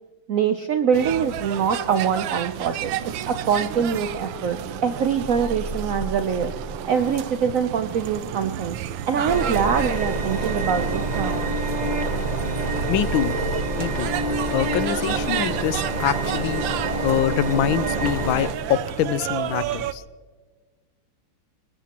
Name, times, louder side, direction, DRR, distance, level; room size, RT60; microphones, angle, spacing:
voice 1, 0.3-6.5 6.9-8.7 9.1-11.4, right 7 dB, 90° right, 9 dB, 0.7 m, -24 dB
sound 1, 0.9-19.9, right 11 dB, 75° right, 1.3 m, -32 dB
sound 2, 2.5-15.3 17.7-17.8, equal, 15° left, 0.7 m, -42 dB
sound 3, 9.2-18.5, right 2 dB, 30° right, 0.8 m, -26 dB
voice 2, 12.9-13.4 13.8-14.1 14.5-16.6 17.0-20.0, left 10 dB, 75° left, 15 dB, 1.4 m, -24 dB
24.0 x 20.0 x 2.9 m, 1.4 s
omnidirectional pair, 2.3 m